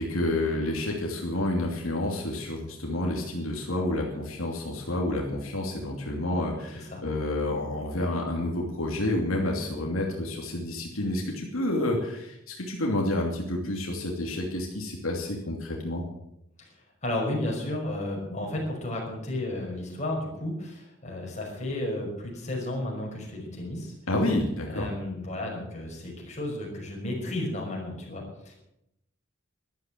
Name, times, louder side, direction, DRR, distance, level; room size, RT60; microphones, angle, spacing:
voice 1, 0.0-16.0 24.1-24.9, left 1 dB, 80° left, 0 dB, 2.8 m, -29 dB
voice 2, 17.0-23.9 24.7-28.5, left 1 dB, 35° left, -1 dB, 5.7 m, -33 dB
13.0 x 12.0 x 7.7 m, 0.81 s
head